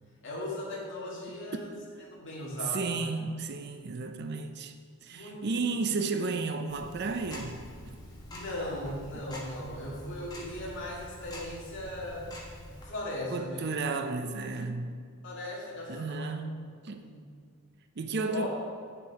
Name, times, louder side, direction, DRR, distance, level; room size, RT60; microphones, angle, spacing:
voice 1, 0.2-1.7 2.1-3.1 5.1-5.7 8.3-12.3 12.8-13.6 15.2-16.3 16.9-17.2 18.1-18.5, left 1 dB, 55° left, 2.3 m, -38 dB
voice 2, 2.7-4.7 5.0-7.6 13.3-14.9 15.9-16.6 16.8-17.1 18.0-18.5, right 4 dB, 50° right, 0.5 m, -33 dB
Tick-tock, 6.7-12.9, equal, 20° left, 1.3 m, -45 dB
8.1 x 7.0 x 4.8 m
head